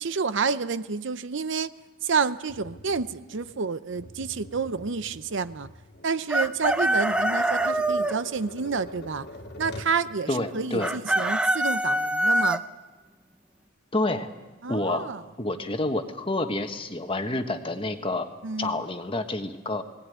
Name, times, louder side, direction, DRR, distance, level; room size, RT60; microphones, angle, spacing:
voice 1, 0.0-1.7 2.0-5.7 6.0-9.3 9.6-12.6 14.6-15.3 18.4-18.8, right 5 dB, 60° right, 14 dB, 0.6 m, -29 dB
Tap, 2.5-10.0, left 1 dB, 55° left, 2.0 m, -45 dB
Chicken rooster, 6.3-8.1 10.8-12.6, right 1 dB, 5° right, 0.7 m, -24 dB
voice 2, 10.3-10.9 13.9-14.3 14.7-15.1 15.4-18.3 18.6-19.8, left 2 dB, 25° left, 7 dB, 1.3 m, -28 dB
20.0 x 18.5 x 9.3 m, 1.2 s
head